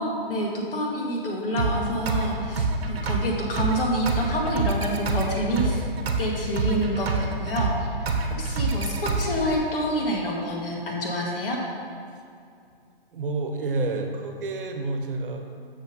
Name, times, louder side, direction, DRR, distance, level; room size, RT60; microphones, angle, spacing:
voice 1, 0.0-5.8 6.2-8.1 8.4-11.6, equal, 65° left, -2 dB, 2.0 m, -27 dB
sound 1, 1.6-9.6, right 3 dB, 85° right, 1.1 m, -27 dB
voice 2, 13.1-15.4, right 3 dB, 60° right, 4 dB, 1.1 m, -29 dB
6.6 x 6.0 x 5.4 m, 2.4 s
hypercardioid pair, 170°, 30 cm